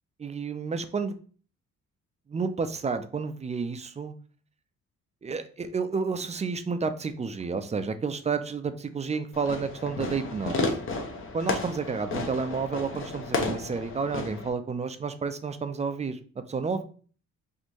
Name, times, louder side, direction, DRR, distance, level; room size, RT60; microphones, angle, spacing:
voice 1, 0.2-1.1 2.3-4.1 5.2-10.6 11.3-16.8, right 5 dB, 25° right, 9 dB, 0.4 m, -30 dB
Fireworks, 9.3-14.5, left 3 dB, 45° left, 0.8 m, -32 dB
4.3 x 2.6 x 3.0 m, 0.42 s
cardioid pair, 90°, 30 cm